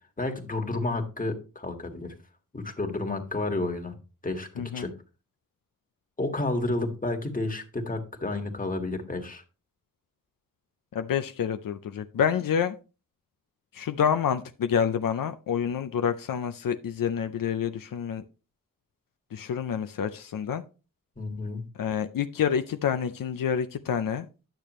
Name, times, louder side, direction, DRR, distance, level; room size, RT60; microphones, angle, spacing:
voice 1, 0.2-2.1 2.5-3.9 4.2-4.5 4.7-4.9 6.2-9.4 21.2-21.7, left 2 dB, 25° left, 4 dB, 1.7 m, -31 dB
voice 2, 4.6-4.9 10.9-12.8 13.7-18.2 19.3-20.6 21.8-24.3, left 8 dB, 80° left, 9 dB, 0.6 m, -28 dB
10.5 x 6.7 x 3.0 m, 0.33 s
wide cardioid pair, 80°, 33 cm